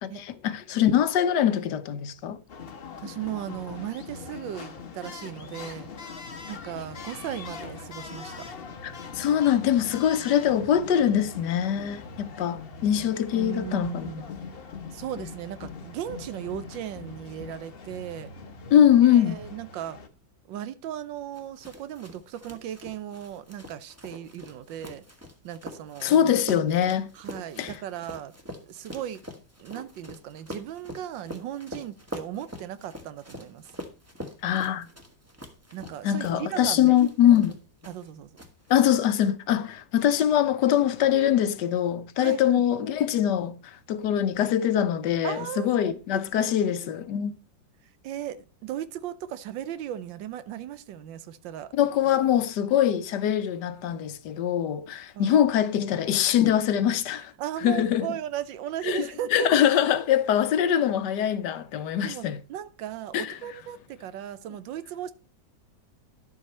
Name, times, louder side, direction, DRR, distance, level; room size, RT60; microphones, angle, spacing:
voice 1, 0.0-2.4 8.8-14.1 18.7-19.4 26.0-27.1 27.6-27.7 34.4-34.9 36.0-37.5 38.7-47.3 51.8-57.3 57.6-58.1 58.8-62.4 63.1-63.4, left 10 dB, 70° left, 1.3 m, -23 dB
sound 1, 2.5-20.1, left 5 dB, 45° left, 0.9 m, -42 dB
voice 2, 3.0-5.9 6.5-8.5 13.3-14.3 14.9-18.3 19.1-20.0 20.5-25.0 25.4-26.1 27.1-28.3 28.6-29.2 29.6-33.7 35.7-37.0 37.3-37.4 37.9-38.3 42.2-42.6 45.2-45.7 46.1-46.5 48.0-51.7 55.1-55.5 57.4-59.7 62.0-65.1, right 11 dB, 85° right, 1.5 m, -36 dB
sound 2, 21.3-38.1 38.4-39.0, left 1 dB, 10° right, 1.1 m, -43 dB
11.0 x 7.3 x 4.3 m
omnidirectional pair, 2.0 m